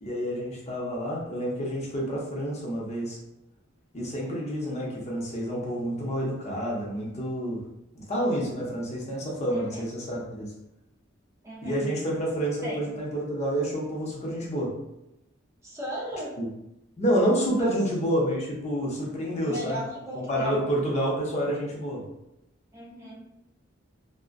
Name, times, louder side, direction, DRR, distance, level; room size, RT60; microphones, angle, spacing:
voice 1, 0.0-3.2 3.9-7.6 7.9-10.5 11.6-14.7 16.4-16.5 17.0-19.8 20.1-22.0, equal, 35° left, -3 dB, 0.6 m, -28 dB
voice 2, 9.5-9.8 11.4-11.9 12.6-13.0 15.6-16.4 17.6-17.7 19.4-20.7 22.7-23.3, right 1 dB, 15° right, -5 dB, 0.4 m, -36 dB
2.4 x 2.1 x 2.4 m, 0.88 s
head